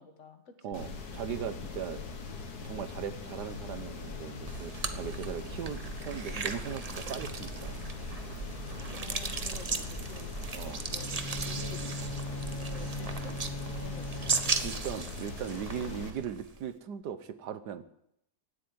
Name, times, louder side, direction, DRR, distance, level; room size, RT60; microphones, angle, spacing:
voice 1, 0.0-0.8 2.3-2.4 8.7-10.4 10.6-12.1 12.5-13.4 13.8-14.4, left 5 dB, 45° left, 6 dB, 1.9 m, -49 dB
voice 2, 0.6-2.0 2.6-7.9 10.5-10.8 14.6-17.8, right 8 dB, 80° right, 12 dB, 1.6 m, -39 dB
sound 1, 0.7-16.1, left 4 dB, 70° left, 2.2 m, -41 dB
sound 2, 4.5-16.7, right 4 dB, 35° right, 0.7 m, -37 dB
Bowed string instrument, 10.8-14.9, left 1 dB, 20° left, 1.3 m, -40 dB
17.0 x 8.4 x 9.6 m, 0.78 s
omnidirectional pair, 1.8 m